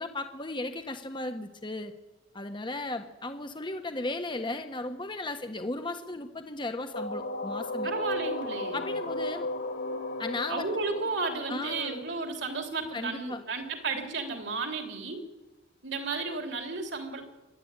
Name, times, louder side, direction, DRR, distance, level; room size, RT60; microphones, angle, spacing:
voice 1, 0.0-1.9 2.3-7.9 8.7-9.5 10.2-10.8 11.5-12.0 12.9-13.4, left 2 dB, 25° left, 7 dB, 1.4 m, -35 dB
sound 1, 6.9-12.7, left 1 dB, 75° left, 2.8 m, -35 dB
voice 2, 7.8-8.8 10.5-15.2 15.8-17.2, right 3 dB, 65° right, 3 dB, 3.3 m, -33 dB
26.0 x 11.5 x 9.0 m, 1.1 s
head